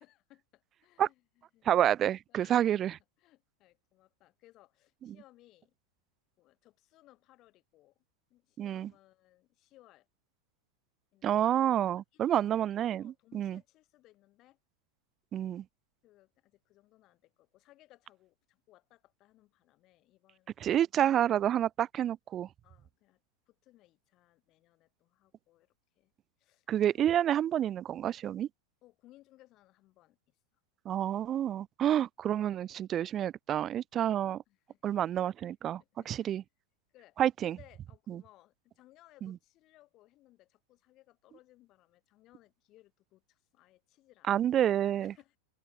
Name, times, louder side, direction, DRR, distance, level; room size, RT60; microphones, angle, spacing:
voice 1, 0.0-1.7 2.3-2.9 3.2-5.7 6.4-8.0 8.3-10.1 11.1-11.6 12.1-14.6 16.0-20.8 21.2-21.3 22.6-23.2 23.5-26.1 26.4-27.1 28.8-30.4 34.2-35.1 35.8-36.4 36.9-45.4, left 16 dB, 35° left, 5.8 m, -63 dB
voice 2, 1.6-3.0 5.1-5.2 8.6-8.9 11.2-13.6 15.3-15.6 20.6-22.5 26.7-28.5 30.9-34.4 34.8-35.8 36.1-36.4 37.2-37.6 38.1-38.2 39.2-39.3 44.3-45.3, right 10 dB, 30° right, 0.4 m, -29 dB
open air
figure-of-eight pair, 90°, 0 cm